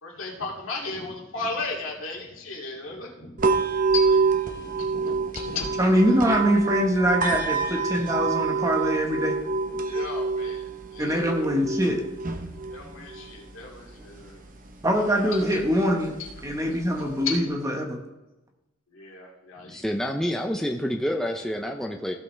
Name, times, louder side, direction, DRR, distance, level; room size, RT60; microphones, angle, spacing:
voice 1, 0.0-3.4 3.9-6.2 8.1-8.3 9.4-11.2 12.7-14.4 15.2-15.5 17.2-17.4 18.9-19.8, left 3 dB, 80° left, -2 dB, 2.3 m, -36 dB
sound 1, 3.4-17.4, right 4 dB, 40° right, 0.9 m, -28 dB
voice 2, 5.8-9.4 11.0-12.1 14.8-16.1 16.4-18.0, equal, 15° right, 2 dB, 1.1 m, -23 dB
voice 3, 19.7-22.1, equal, ahead, 2 dB, 0.5 m, -28 dB
15.5 x 5.6 x 3.2 m, 1.0 s
head